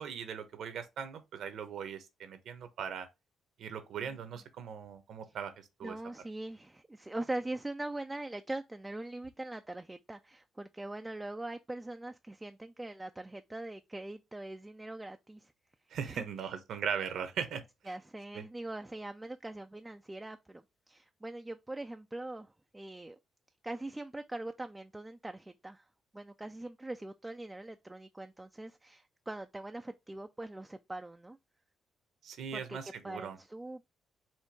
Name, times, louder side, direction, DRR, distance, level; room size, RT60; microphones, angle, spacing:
voice 1, 0.0-3.1 3.6-5.5 5.8-6.0 15.9-17.6 18.3-18.4 32.2-33.4, right 7 dB, 70° right, 0.9 m, -39 dB
voice 2, 5.8-15.5 16.0-16.5 17.9-23.2 23.6-25.9 26.1-31.4 32.5-33.9, right 2 dB, 15° right, 0.3 m, -42 dB
4.4 x 2.7 x 4.5 m
cardioid pair, 90°, 0 cm